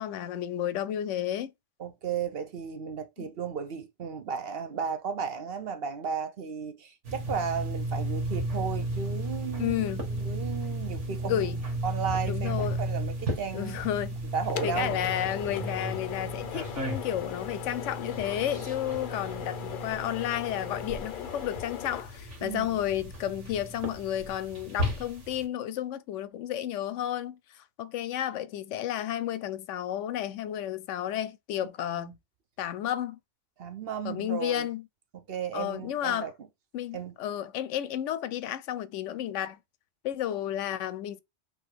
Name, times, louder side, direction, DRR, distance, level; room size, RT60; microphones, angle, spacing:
voice 1, 0.0-1.5 3.2-3.3 9.6-10.1 11.2-11.6 12.2-12.8 13.5-14.2 14.6-32.2 32.6-33.2 34.0-34.9 35.5-36.3 36.7-39.6 40.0-41.2, left 11 dB, 90° left, 0.9 m, -32 dB
voice 2, 1.8-9.8 10.1-11.5 11.8-13.8 14.3-15.0 22.4-22.8 33.6-34.7 35.1-36.3 36.9-37.1, right 6 dB, 55° right, 1.0 m, -34 dB
sound 1, 7.0-25.4, right 1 dB, 80° right, 1.9 m, -35 dB
sound 2, 13.0-23.7, left 9 dB, 60° left, 0.6 m, -40 dB
3.9 x 2.9 x 4.7 m
omnidirectional pair, 1.2 m